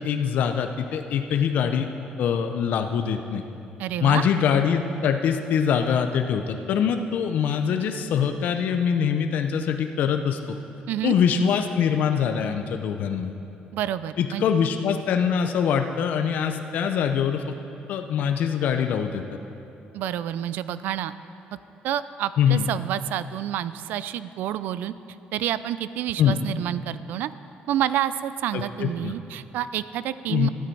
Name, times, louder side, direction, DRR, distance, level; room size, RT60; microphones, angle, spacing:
voice 1, 0.0-1.9 2.2-3.4 4.0-10.6 11.0-13.3 14.2-17.4 17.9-19.2 22.4-22.7 26.2-26.4 28.5-29.1 30.3-30.5, left 7 dB, 60° left, 6 dB, 0.5 m, -23 dB
voice 2, 3.8-4.2 10.9-11.2 13.7-14.5 19.9-21.1 21.8-24.9 25.3-27.3 27.7-30.5, right 11 dB, 75° right, 15 dB, 0.3 m, -28 dB
13.0 x 8.6 x 4.5 m, 2.9 s
cardioid pair, 155°, 3 cm